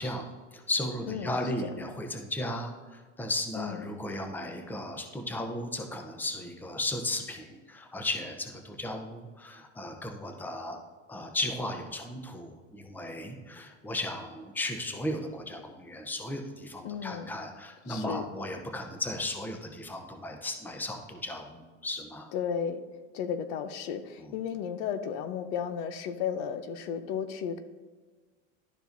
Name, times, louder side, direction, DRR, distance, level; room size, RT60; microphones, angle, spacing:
voice 1, 0.0-10.8 11.1-22.3 24.2-24.3, left 1 dB, 5° left, 4 dB, 0.7 m, -35 dB
voice 2, 1.0-1.4 3.6-3.8 16.8-17.3 17.8-18.2 22.3-22.8 23.1-27.6, left 7 dB, 65° left, 10 dB, 0.7 m, -34 dB
12.0 x 4.6 x 2.6 m, 1.4 s
supercardioid pair, 115°, 37 cm